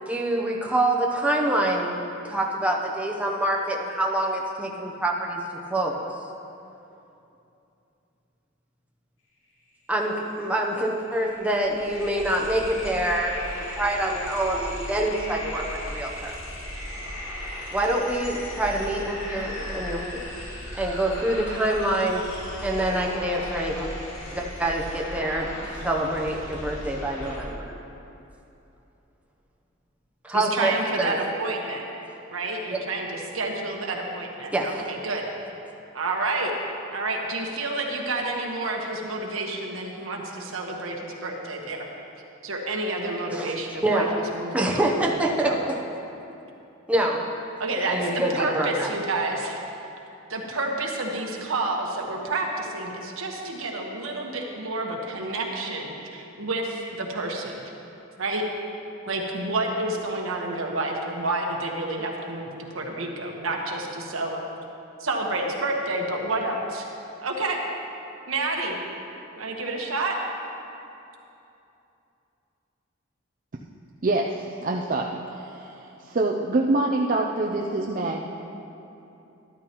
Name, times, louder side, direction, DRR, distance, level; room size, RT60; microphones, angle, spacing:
voice 1, 0.1-5.4 5.7-6.0 9.9-16.3 17.7-20.3 20.7-22.3 22.6-23.9 24.3-25.5 25.8-27.7 30.2-31.2 32.7-32.8 34.5-34.8 43.3-43.5 43.8-44.1 44.5-45.8 46.9-47.3 47.9-48.9, right 1 dB, 5° right, -1 dB, 0.8 m, -26 dB
sound 1, 10.4-10.5 10.7-27.4, left 1 dB, 65° left, 2.7 m, -36 dB
voice 2, 30.3-31.8 32.3-35.3 35.9-36.5 36.9-41.8 42.4-44.7 45.0-45.6 47.6-49.6 50.3-57.5 58.2-58.4 59.1-62.5 62.7-64.4 65.0-66.9 67.2-67.6 68.3-68.8 69.4-70.1, right 2 dB, 80° right, 0 dB, 1.3 m, -29 dB
voice 3, 74.0-75.7 76.0-78.2, right 2 dB, 40° right, -1 dB, 0.5 m, -25 dB
12.5 x 12.0 x 3.0 m, 2.8 s
head